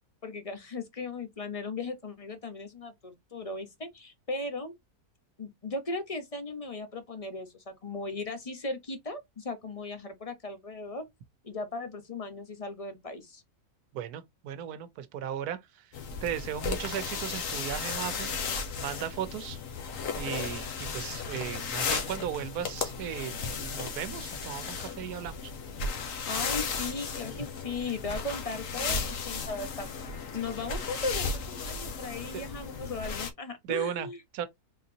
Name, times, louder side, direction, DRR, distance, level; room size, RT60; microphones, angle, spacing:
voice 1, 0.2-4.7 5.4-11.1 11.4-13.4 26.3-29.9 30.3-34.2, left 3 dB, 30° left, 0.9 m, -37 dB
voice 2, 13.9-15.9 16.2-18.3 18.8-19.6 20.2-25.5 32.3-32.4 33.6-34.1 34.3-34.5, right 10 dB, 80° right, 1.2 m, -36 dB
sound 1, 15.9-33.3, left 5 dB, 60° left, 1.3 m, -35 dB
3.9 x 3.9 x 2.8 m
omnidirectional pair, 1.6 m